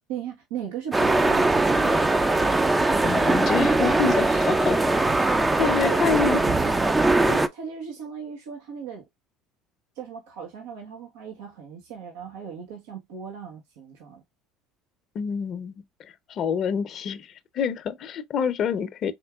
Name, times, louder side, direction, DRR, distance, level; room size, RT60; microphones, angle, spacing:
voice 1, 0.1-2.0 5.8-6.8 7.2-9.0 9.9-14.2, right 6 dB, 80° right, 1.1 m, -36 dB
sound 1, 0.9-7.5, right 2 dB, 15° right, 0.5 m, -21 dB
voice 2, 3.0-4.8 5.6-6.4 15.1-19.1, left 7 dB, 50° left, 0.6 m, -27 dB
4.4 x 3.7 x 2.3 m
supercardioid pair, 85°, 0 cm